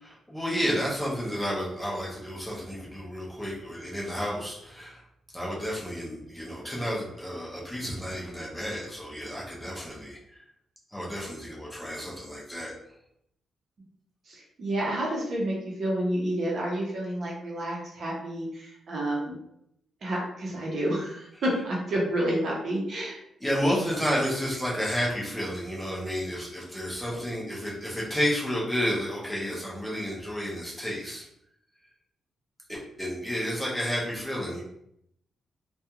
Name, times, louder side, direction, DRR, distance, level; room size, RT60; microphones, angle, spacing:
voice 1, 0.0-5.0 5.3-10.4 10.9-12.7 23.4-31.3 32.7-34.6, equal, 5° left, -6 dB, 0.6 m, -31 dB
voice 2, 14.3-19.3 20.0-23.2, right 1 dB, 45° right, -4 dB, 0.7 m, -29 dB
2.4 x 2.2 x 2.8 m, 0.76 s
wide cardioid pair, 170°, 0 cm